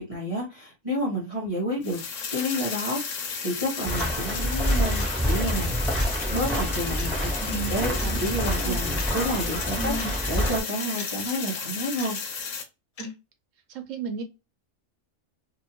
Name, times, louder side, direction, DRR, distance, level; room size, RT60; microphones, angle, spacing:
voice 1, 0.0-2.0 2.3-5.7 6.3-7.9 8.2-12.2, equal, 30° right, 1.1 m, -30 dB
sound 1, 1.8-12.6, left 5 dB, 75° left, 1.1 m, -33 dB
sound 2, 3.8-10.6, equal, ahead, 1.2 m, -27 dB
sound 3, 4.0-4.1 5.0-5.1 6.0-6.1 7.0-7.1 8.0-8.1 9.0-9.1 10.0-10.1 11.0-11.1 12.0-12.1 13.0-13.1, left 4 dB, 45° left, 0.5 m, -40 dB
voice 2, 7.4-8.8 9.8-10.2 13.0-13.1 13.7-14.2, right 4 dB, 80° right, 1.1 m, -34 dB
2.9 x 2.5 x 2.8 m
omnidirectional pair, 1.3 m